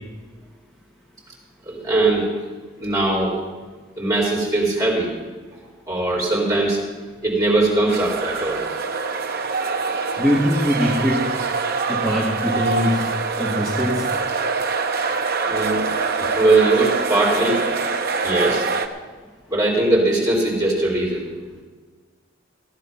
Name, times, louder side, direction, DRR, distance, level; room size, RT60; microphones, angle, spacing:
voice 1, 1.7-2.3 2.8-3.3 4.0-5.1 5.9-6.8 7.2-8.6 15.5-15.8 16.2-17.6 18.2-18.7 19.5-21.3, right 2 dB, 15° right, -5 dB, 4.1 m, -20 dB
sound 1, 7.9-18.9, right 4 dB, 50° right, 0.9 m, -24 dB
voice 2, 10.2-11.2 11.9-13.0 13.4-14.0, equal, ahead, -5 dB, 1.7 m, -21 dB
15.5 x 10.5 x 5.7 m, 1.4 s
head